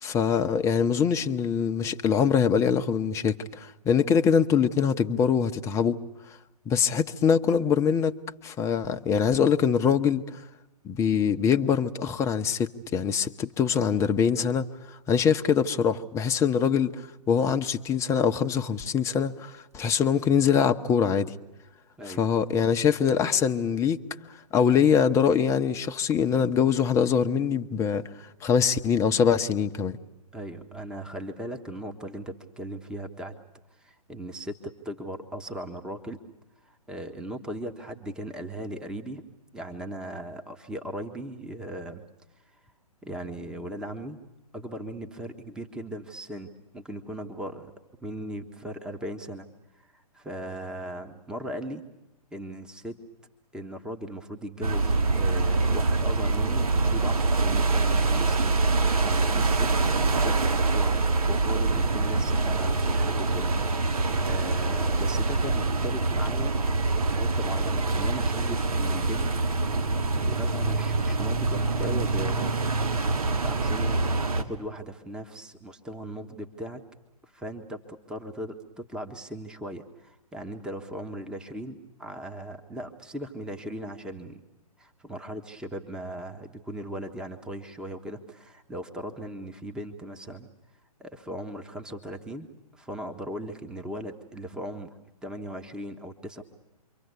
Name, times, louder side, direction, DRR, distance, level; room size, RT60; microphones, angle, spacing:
voice 1, 0.0-6.0 6.7-8.2 8.4-10.2 10.8-14.7 15.1-17.0 17.3-21.3 22.1-24.0 24.5-28.0 28.4-30.0, left 7 dB, 15° left, 0.9 m, -23 dB
voice 2, 22.0-22.5 30.3-33.4 33.7-36.2 36.6-39.2 39.5-42.1 43.0-44.2 44.5-47.7 48.0-49.5 49.7-51.8 52.3-53.0 53.5-59.7 60.1-66.6 67.0-69.3 69.6-72.6 73.4-76.8 77.2-84.4 84.8-90.5 91.0-95.0 95.2-96.4, right 1 dB, 5° right, 1.3 m, -38 dB
sound 1, 54.6-74.4, right 3 dB, 65° right, 2.5 m, -25 dB
28.5 x 24.5 x 8.3 m
figure-of-eight pair, 130°, 20 cm